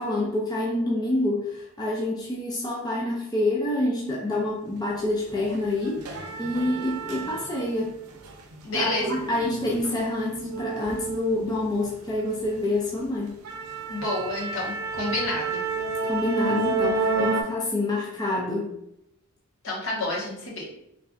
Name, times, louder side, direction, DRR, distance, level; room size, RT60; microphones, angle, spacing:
voice 1, 0.0-7.9 8.7-13.3 16.0-18.7, left 1 dB, 20° left, -3 dB, 0.5 m, -27 dB
sound 1, 4.9-5.1 5.4-7.8 8.2-11.9 12.3-12.6 13.0-13.1 13.4-17.4, right 4 dB, 85° right, 0.6 m, -30 dB
voice 2, 8.6-9.1 13.9-15.6 19.6-20.7, left 1 dB, 65° left, -4 dB, 1.2 m, -29 dB
3.7 x 3.2 x 2.4 m, 0.81 s
head